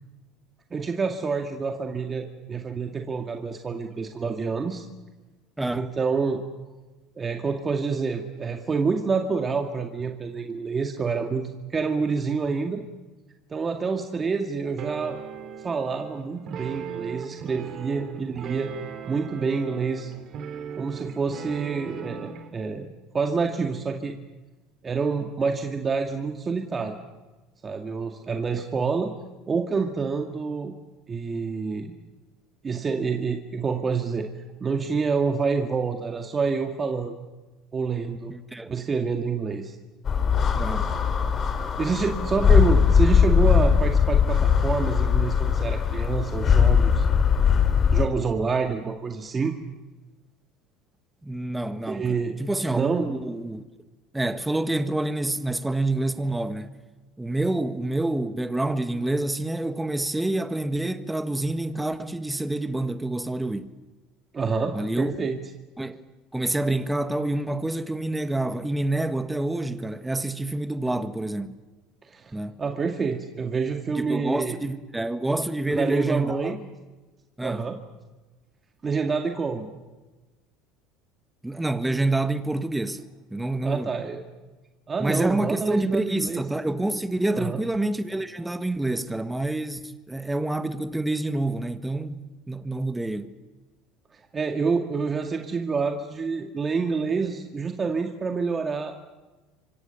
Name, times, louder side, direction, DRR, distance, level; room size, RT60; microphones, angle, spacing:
voice 1, 0.7-4.9 5.7-6.4 7.2-12.8 13.5-15.2 15.6-18.7 19.1-20.1 20.8-22.9 23.1-24.1 24.8-27.0 27.6-29.1 29.5-30.7 31.1-31.9 32.6-34.3 34.6-37.1 37.7-38.3 38.7-39.7 41.8-47.1 47.9-49.5 51.9-52.4 52.7-53.1 64.3-65.4 72.1-72.3 72.6-74.6 75.7-76.6 77.4-77.8 78.8-79.7 83.6-84.2 84.9-86.5 87.3-87.6 94.1-98.9, right 5 dB, 25° right, 2.1 m, -27 dB
voice 2, 5.6-5.9 38.3-38.7 40.6-40.9 51.2-53.6 54.1-56.7 57.2-63.7 64.7-65.1 65.8-66.0 66.3-71.6 72.3-72.6 73.9-76.5 77.4-77.6 81.4-84.0 85.0-92.2 92.5-93.3, right 2 dB, 10° right, 1.6 m, -27 dB
sound 1, 14.8-22.5, right 7 dB, 50° right, 2.9 m, -38 dB
sound 2, 40.1-48.1, left 7 dB, 35° left, 3.4 m, -20 dB
30.0 x 25.0 x 7.1 m
supercardioid pair, 95°, 0 cm